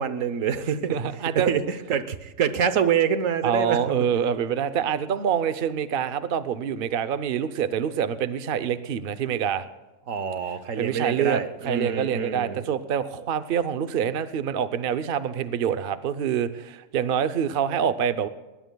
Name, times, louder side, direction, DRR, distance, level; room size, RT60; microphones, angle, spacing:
voice 1, 0.0-1.6 1.9-3.8 10.1-12.6, right 7 dB, 85° right, 12 dB, 1.3 m, -26 dB
voice 2, 0.9-1.5 3.4-9.6 10.8-18.3, right 8 dB, 50° right, 12 dB, 0.8 m, -26 dB
20.0 x 19.5 x 2.3 m, 1.1 s
omnidirectional pair, 1.3 m